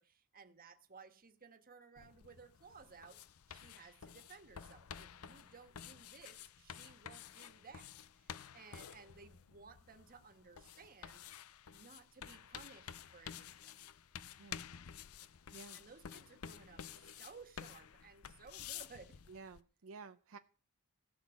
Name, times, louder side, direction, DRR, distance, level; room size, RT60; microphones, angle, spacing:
voice 1, 0.0-3.2 3.5-11.3 11.7-13.8 15.7-19.2, right 5 dB, 40° right, 1.6 m, -58 dB
sound 1, 2.0-19.6, left 8 dB, 75° left, 0.6 m, -52 dB
voice 2, 19.3-20.4, right 4 dB, 65° right, 0.6 m, -53 dB
16.5 x 6.4 x 7.2 m
head